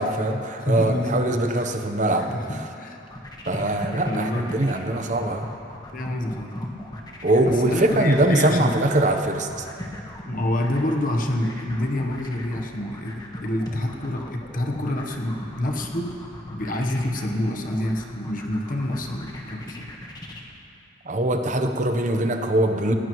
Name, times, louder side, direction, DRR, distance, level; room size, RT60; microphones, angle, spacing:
voice 1, 0.0-2.6 3.5-5.5 7.2-9.5 21.0-22.9, right 1 dB, 40° right, 6 dB, 0.9 m, -22 dB
voice 2, 0.6-1.3 1.5-1.7 2.1-3.0 4.1-4.5 5.9-6.5 7.4-8.7 10.3-16.1 16.5-19.9, left 1 dB, 45° left, 1 dB, 1.1 m, -27 dB
sound 1, 3.0-20.4, left 1 dB, 20° left, 1.3 m, -38 dB
19.5 x 16.5 x 3.1 m, 2.7 s
head